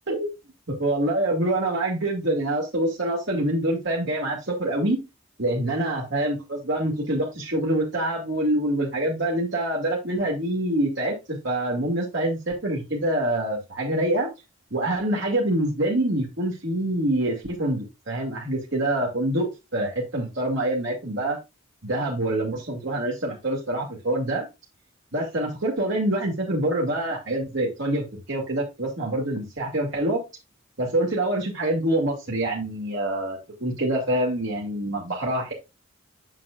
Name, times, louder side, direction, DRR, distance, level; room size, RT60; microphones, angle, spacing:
voice 1, 0.7-5.0 5.4-14.3 14.7-21.4 21.8-24.4 25.1-30.2 30.8-35.5, right 1 dB, 60° right, -2 dB, 2.2 m, -26 dB
7.6 x 7.2 x 2.5 m, 0.24 s
head